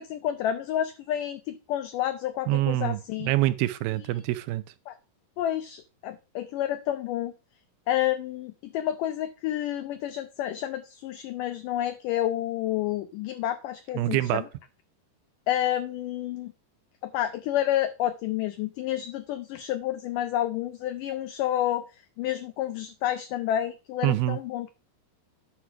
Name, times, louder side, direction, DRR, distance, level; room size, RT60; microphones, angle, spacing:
voice 1, 0.0-3.3 4.0-4.1 4.9-5.0 5.4-7.3 7.9-14.5 15.5-16.5 17.0-21.9 22.2-24.7, left 12 dB, 80° left, 1.9 m, -29 dB
voice 2, 2.5-4.6 14.0-14.4 24.0-24.4, right 16 dB, 80° right, 2.3 m, -25 dB
10.5 x 4.7 x 5.8 m
omnidirectional pair, 4.5 m